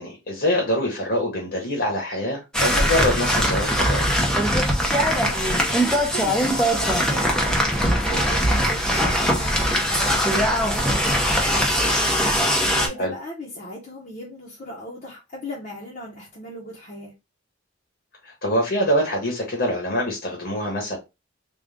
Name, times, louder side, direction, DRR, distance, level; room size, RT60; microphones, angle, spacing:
voice 1, 0.0-4.1 13.0-13.1 18.2-21.0, equal, 60° left, 1.3 m, -24 dB
sound 1, 2.5-12.9, equal, 5° left, 0.7 m, -21 dB
voice 2, 4.5-12.5 12.7-17.1, equal, 45° left, 0.9 m, -37 dB
3.7 x 2.4 x 3.5 m
head